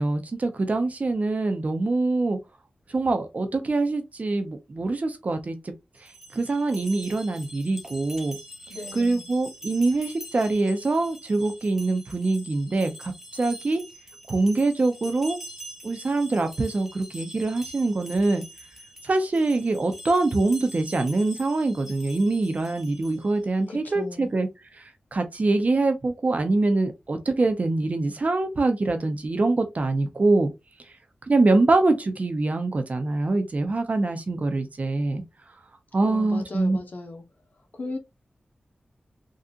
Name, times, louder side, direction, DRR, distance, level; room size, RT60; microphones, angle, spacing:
voice 1, 0.0-2.4 2.9-5.7 6.0-8.4 8.9-13.8 14.3-15.4 15.8-18.4 19.0-24.5 24.7-30.5 31.3-35.2 35.9-36.8, right 2 dB, 50° right, 0.8 m, -24 dB
sound 1, 6.0-23.4, equal, 10° right, 1.1 m, -44 dB
voice 2, 8.7-9.2 23.7-24.3 36.0-37.2 37.7-38.0, left 2 dB, 70° left, 0.9 m, -36 dB
3.7 x 2.4 x 2.7 m
cardioid pair, 60°, 3 cm